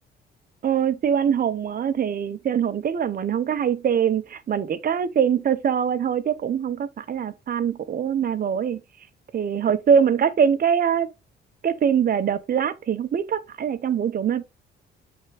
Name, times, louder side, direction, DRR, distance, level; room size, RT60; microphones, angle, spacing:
voice 1, 0.6-8.8 9.3-11.1 11.6-14.4, right 8 dB, 50° right, 0.7 m, -23 dB
8.0 x 3.5 x 3.3 m
cardioid pair, 90°, 20 cm